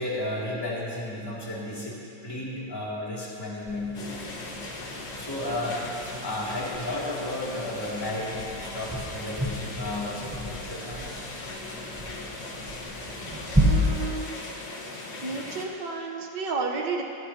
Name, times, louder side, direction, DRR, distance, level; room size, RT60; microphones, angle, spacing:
voice 1, 0.0-4.2 5.1-5.8 6.2-11.4 13.5-13.6, left 1 dB, 10° left, -7 dB, 2.6 m, -33 dB
sound 1, 3.6-14.1, equal, 10° right, 0.8 m, -32 dB
sound 2, 3.9-15.6, left 2 dB, 85° left, 2.1 m, -38 dB
voice 2, 13.6-14.4 15.2-17.0, right 4 dB, 75° right, 1 dB, 1.7 m, -32 dB
20.0 x 13.0 x 2.9 m, 2.6 s
omnidirectional pair, 1.9 m